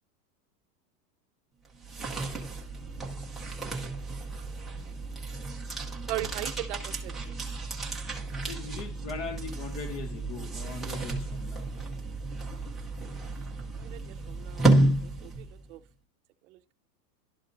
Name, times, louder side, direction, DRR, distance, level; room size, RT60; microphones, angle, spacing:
sound 1, 1.6-15.7, right 2 dB, ahead, 0.5 m, -31 dB
voice 1, 6.1-7.2 13.3-13.5 13.8-14.8 15.0-15.8 16.5-16.7, right 14 dB, 45° right, 0.7 m, -39 dB
voice 2, 8.3-11.7, left 4 dB, 30° left, 1.0 m, -40 dB
12.0 x 4.2 x 2.6 m
supercardioid pair, 160°, 49 cm